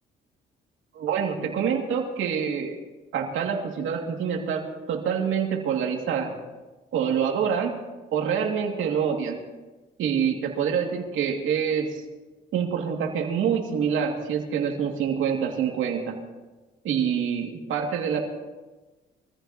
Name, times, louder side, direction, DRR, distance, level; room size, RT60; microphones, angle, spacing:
voice 1, 0.9-2.8 3.1-6.3 6.9-7.8 8.1-9.4 10.0-12.0 12.5-16.2 16.8-18.2, right 7 dB, 80° right, 1 dB, 2.7 m, -26 dB
24.0 x 15.0 x 3.1 m, 1.2 s
cardioid pair, 90°, 20 cm